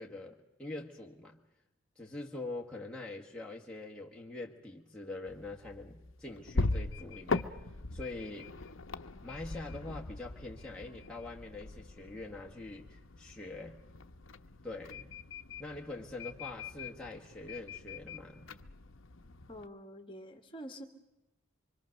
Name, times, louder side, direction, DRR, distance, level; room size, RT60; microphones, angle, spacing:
voice 1, 0.0-1.4 2.0-7.5 7.9-8.5 9.2-13.8 14.6-15.1 15.6-18.5, left 2 dB, 5° left, -3 dB, 1.5 m, -44 dB
sound 1, 5.3-19.7, left 3 dB, 65° left, 0.8 m, -41 dB
voice 2, 19.5-20.9, equal, 25° left, 6 dB, 1.7 m, -46 dB
25.0 x 24.5 x 6.5 m, 0.93 s
head